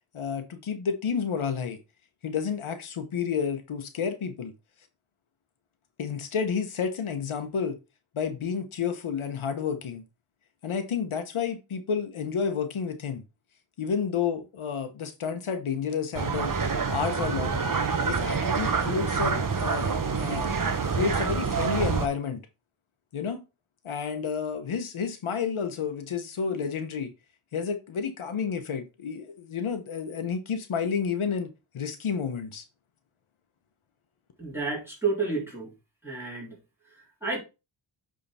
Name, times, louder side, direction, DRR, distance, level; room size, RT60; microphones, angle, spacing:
voice 1, 0.1-1.8 2.2-4.5 6.0-7.8 8.1-10.0 10.6-13.2 13.8-16.6 16.9-17.6 18.0-20.5 20.9-22.4 23.1-23.4 23.8-27.1 27.5-31.5 31.7-32.6, left 6 dB, 75° left, 1.0 m, -30 dB
sound 1, 16.1-22.1, right 5 dB, 40° right, 1.0 m, -27 dB
voice 2, 34.4-35.7 36.0-36.6 37.2-37.4, right 4 dB, 5° right, 3.9 m, -30 dB
8.8 x 3.8 x 4.1 m
wide cardioid pair, 100°, 49 cm